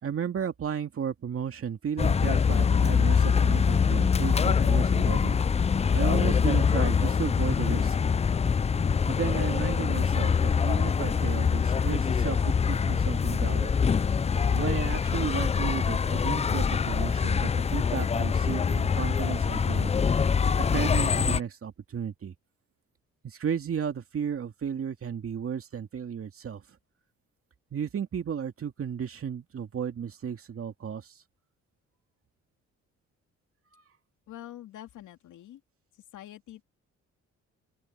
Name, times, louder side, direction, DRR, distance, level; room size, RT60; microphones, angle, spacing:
voice 1, 0.0-5.4 5.9-8.0 9.1-13.9 14.5-19.9 20.7-22.3 23.2-26.6 27.7-31.1 33.7-33.8, right 7 dB, 50° right, 2.3 m, -34 dB
sound 1, 2.0-21.4, left 6 dB, 20° left, 0.4 m, -24 dB
voice 2, 34.3-35.6 36.1-36.6, left 12 dB, 75° left, 2.7 m, -45 dB
open air
cardioid pair, 90°, 30 cm